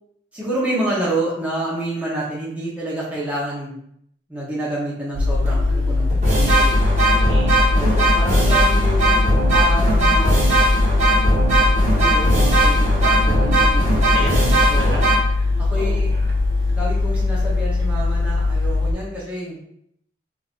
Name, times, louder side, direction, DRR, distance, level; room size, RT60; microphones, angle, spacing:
voice 1, 0.3-3.9 4.3-6.7 7.7-9.2 9.5-10.4 11.9-15.0 15.6-16.2 16.7-19.6, right 1 dB, 10° right, -8 dB, 0.7 m, -28 dB
sound 1, 5.2-18.9, left 3 dB, 60° right, 0.4 m, -20 dB
sound 2, 5.5-5.6 6.1-15.2, right 1 dB, 40° right, 1.1 m, -18 dB
voice 2, 7.2-8.2 13.1-13.5 14.1-14.5 15.2-16.3, right 2 dB, 75° right, -5 dB, 1.2 m, -37 dB
3.4 x 2.5 x 2.4 m, 0.70 s
head